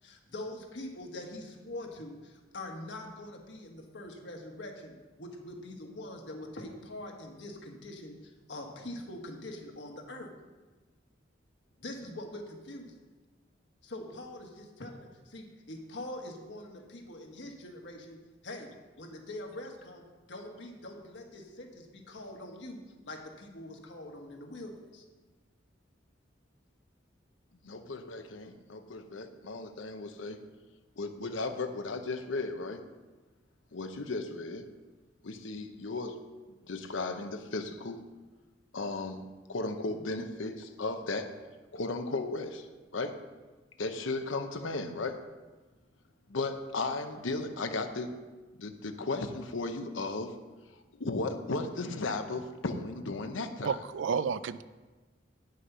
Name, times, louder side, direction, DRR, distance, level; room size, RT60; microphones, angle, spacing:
voice 1, 0.0-10.3 11.8-12.9 13.8-18.2 18.4-18.7 19.0-22.8 23.0-25.0, left 1 dB, 65° left, 2 dB, 1.5 m, -44 dB
voice 2, 27.6-30.4 31.0-32.8 33.7-34.7 35.2-36.2 36.7-38.0 38.7-39.2 39.5-41.3 41.7-42.7 42.9-43.2 43.8-45.2 46.3-48.1 48.6-50.3 51.0-53.8, left 3 dB, 85° left, 7 dB, 0.8 m, -35 dB
voice 3, 53.6-54.6, right 6 dB, 75° right, 15 dB, 0.4 m, -31 dB
9.5 x 6.5 x 5.5 m, 1.3 s
head